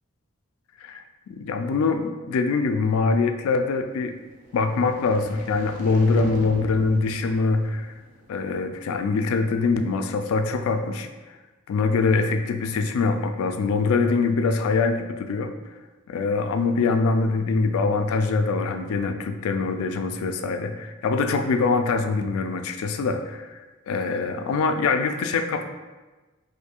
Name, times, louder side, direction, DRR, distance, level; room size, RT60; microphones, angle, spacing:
voice 1, 0.8-4.2 4.5-7.9 8.3-11.1 11.7-15.5 16.1-23.6 23.9-25.6, left 4 dB, 85° left, 7 dB, 0.3 m, -23 dB
sound 1, 4.3-8.5, right 1 dB, 35° right, 0.4 m, -41 dB
4.3 x 2.6 x 2.3 m, 1.2 s
head